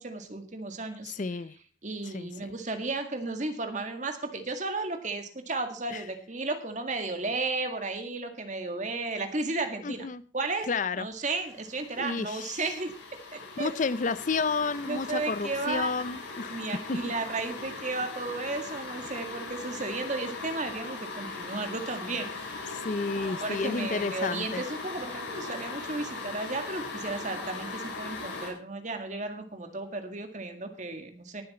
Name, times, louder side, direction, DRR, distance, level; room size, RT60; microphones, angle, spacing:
voice 1, 0.0-1.1 1.8-10.1 10.3-10.7 10.9-12.9 13.3-13.7 14.9-15.9 16.5-22.6 23.2-31.4, right 3 dB, 40° right, 2.0 m, -34 dB
voice 2, 1.1-1.5 2.1-2.5 5.9-6.0 9.8-10.2 10.7-11.1 12.0-12.6 13.6-16.6 16.9-17.1 22.7-24.6, left 4 dB, 40° left, 0.5 m, -31 dB
sound 1, 11.3-28.5, left 3 dB, 85° left, 4.8 m, -39 dB
19.0 x 7.8 x 4.3 m
head